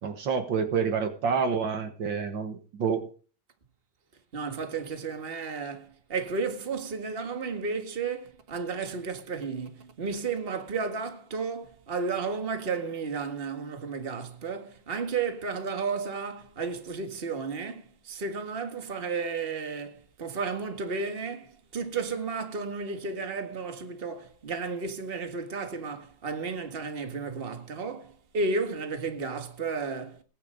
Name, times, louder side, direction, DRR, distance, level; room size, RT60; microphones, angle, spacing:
voice 1, 0.0-3.1, right 6 dB, 65° right, 2.2 m, -28 dB
voice 2, 4.3-30.2, right 4 dB, 30° right, 1.9 m, -33 dB
18.5 x 10.5 x 5.1 m
omnidirectional pair, 2.2 m